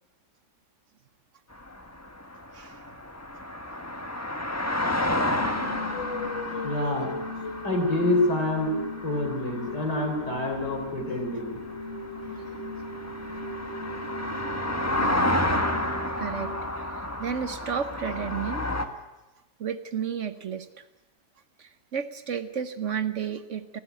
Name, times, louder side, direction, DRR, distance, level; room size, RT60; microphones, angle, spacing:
sound 1, 1.6-18.8, left 1 dB, 10° left, 1.2 m, -31 dB
voice 1, 2.5-2.9 6.5-6.7 12.2-12.6 13.1-13.4 15.0-15.4 16.2-18.7 19.6-20.7 21.6-23.8, right 7 dB, 55° right, 12 dB, 1.1 m, -33 dB
sound 2, 5.4-17.4, left 2 dB, 45° left, 1.6 m, -37 dB
voice 2, 6.6-7.1 7.6-8.7 9.0-11.6, left 1 dB, 90° left, 2 dB, 4.6 m, -27 dB
18.0 x 16.5 x 9.1 m, 1.1 s
omnidirectional pair, 1.7 m